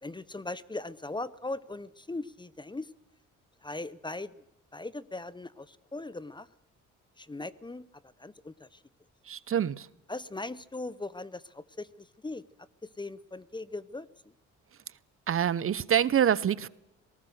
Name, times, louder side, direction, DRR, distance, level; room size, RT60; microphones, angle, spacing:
voice 1, 0.0-2.9 3.6-4.3 4.7-6.5 7.2-7.8 8.2-8.8 10.1-12.4 13.0-14.1, left 2 dB, 15° left, 0.7 m, -39 dB
voice 2, 9.3-9.9 15.3-16.7, right 9 dB, 45° right, 0.8 m, -26 dB
26.5 x 19.0 x 6.6 m
cardioid pair, 90°, 30 cm